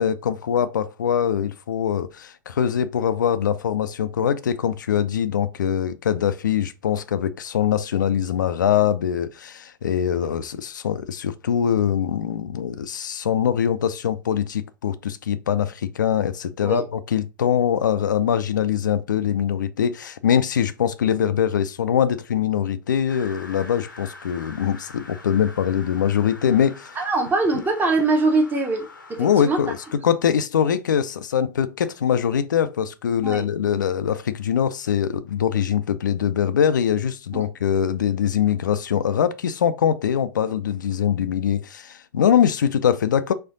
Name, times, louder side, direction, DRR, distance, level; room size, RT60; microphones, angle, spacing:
voice 1, 0.0-27.0 27.5-27.6 29.2-43.3, left 8 dB, 70° left, 0.4 m, -23 dB
sound 1, 23.1-30.0, left 3 dB, 85° left, 0.9 m, -44 dB
voice 2, 27.0-29.6 33.2-33.4 37.3-37.5, right 3 dB, 20° right, 1.0 m, -22 dB
4.3 x 2.5 x 3.9 m
figure-of-eight pair, 95°, 10 cm